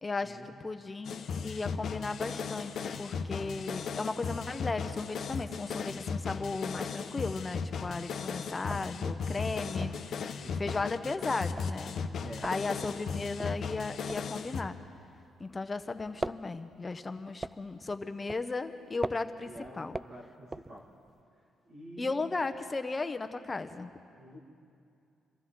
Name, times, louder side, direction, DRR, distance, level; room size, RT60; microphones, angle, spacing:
voice 1, 0.0-12.0 12.4-14.8 15.4-20.0 22.0-23.9, left 3 dB, 25° left, 9 dB, 0.8 m, -36 dB
sound 1, 1.0-14.6, left 6 dB, 60° left, 0.8 m, -36 dB
sound 2, 7.3-7.9 8.2-8.3 8.5-15.6 15.9-21.2, right 2 dB, 20° right, 0.3 m, -42 dB
voice 2, 12.2-12.5 12.9-13.2 19.4-20.9 21.7-22.2 24.2-24.4, right 1 dB, 60° right, -4 dB, 2.1 m, -48 dB
25.5 x 13.5 x 3.9 m, 2.5 s
cardioid pair, 90°, 0 cm